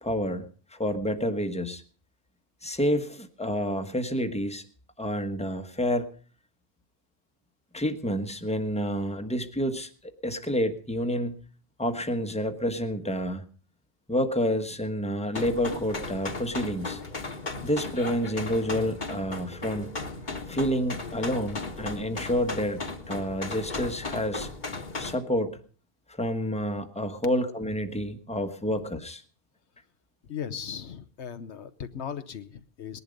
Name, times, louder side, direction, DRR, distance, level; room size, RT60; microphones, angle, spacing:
voice 1, 0.0-0.4 0.7-1.8 2.6-4.6 5.0-6.1 7.7-11.4 11.8-13.4 14.1-17.0 17.6-19.9 20.5-22.8 23.1-24.5 25.0-25.6 26.1-29.2, equal, 5° left, 6 dB, 1.2 m, -29 dB
sound 1, 15.3-25.2, left 3 dB, 45° left, 1.5 m, -36 dB
voice 2, 30.3-33.0, left 8 dB, 80° left, 10 dB, 1.2 m, -38 dB
19.5 x 11.0 x 5.2 m, 0.42 s
omnidirectional pair, 1.1 m